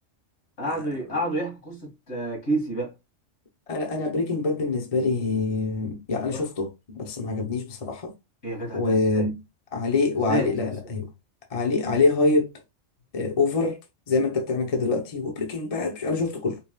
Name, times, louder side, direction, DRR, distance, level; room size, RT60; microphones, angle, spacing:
voice 1, 0.6-2.9 6.3-6.5 8.4-9.3 10.3-10.5, right 1 dB, 60° left, 2.4 m, -29 dB
voice 2, 3.7-8.1 8.7-9.3 9.7-11.1 11.5-12.5 13.1-13.8 14.1-16.6, left 3 dB, 35° left, 0.8 m, -25 dB
5.2 x 3.2 x 2.3 m
omnidirectional pair, 1.3 m